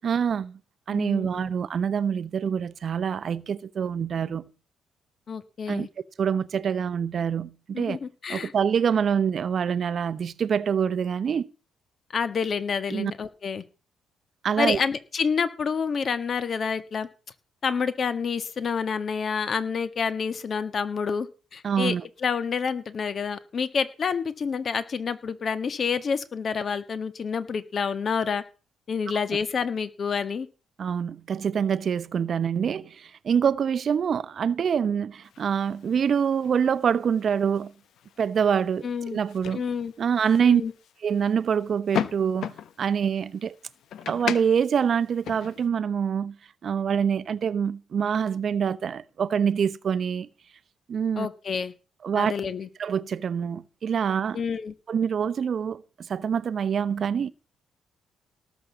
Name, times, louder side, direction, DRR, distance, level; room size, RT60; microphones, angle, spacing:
voice 1, 0.0-0.6 0.9-4.5 5.7-5.9 6.2-8.0 8.3-11.5 12.9-13.1 14.4-14.8 21.6-22.0 30.8-37.7 38.2-39.6 40.0-40.6 41.0-43.5 44.1-46.4 46.6-50.3 50.9-51.3 52.0-52.3 52.8-54.4 54.9-55.8 56.1-57.3, right 7 dB, 55° right, 0.8 m, -25 dB
voice 2, 0.9-1.5 5.3-5.9 7.7-8.5 12.1-13.6 14.6-17.1 17.6-22.0 22.2-28.4 28.9-30.5 38.8-39.2 39.5-39.9 40.4-40.7 51.2-51.7 52.2-52.7 54.3-54.7, left 6 dB, 45° left, 1.4 m, -28 dB
sound 1, 35.2-45.7, left 9 dB, 70° left, 1.0 m, -38 dB
18.0 x 6.2 x 7.1 m
cardioid pair, 90°, 0 cm